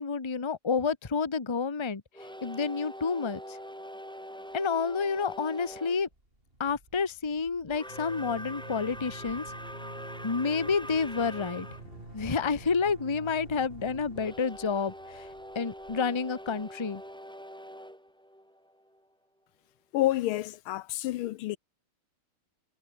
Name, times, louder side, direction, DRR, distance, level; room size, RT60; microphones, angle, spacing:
voice 1, 0.0-2.0 2.4-3.6 4.5-6.1 6.6-9.4 10.2-11.7 12.1-15.3 15.5-17.0, left 5 dB, 20° left, 0.9 m, -29 dB
sound 1, 2.1-6.0 7.7-11.8 14.1-19.0, equal, ahead, 7.4 m, -44 dB
sound 2, 4.8-5.3 5.6-5.7 6.0-16.7, right 1 dB, 25° right, 6.4 m, -48 dB
voice 2, 19.9-21.6, left 15 dB, 75° left, 1.4 m, -29 dB
omnidirectional pair, 2.4 m